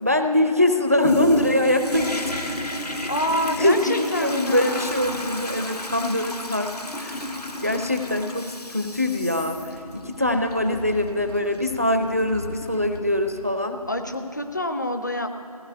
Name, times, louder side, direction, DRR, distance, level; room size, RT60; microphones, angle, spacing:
voice 1, 0.0-2.4 3.6-6.7 7.0-7.3 7.6-13.8, left 1 dB, 25° right, 7 dB, 0.4 m, -23 dB
Toilet flush, 1.0-13.4 14.0-14.1, left 1 dB, 85° left, 1.5 m, -32 dB
voice 2, 3.1-4.9 13.9-15.3, left 1 dB, 30° left, 7 dB, 0.6 m, -27 dB
16.0 x 8.6 x 9.3 m, 2.5 s
figure-of-eight pair, 165°, 20 cm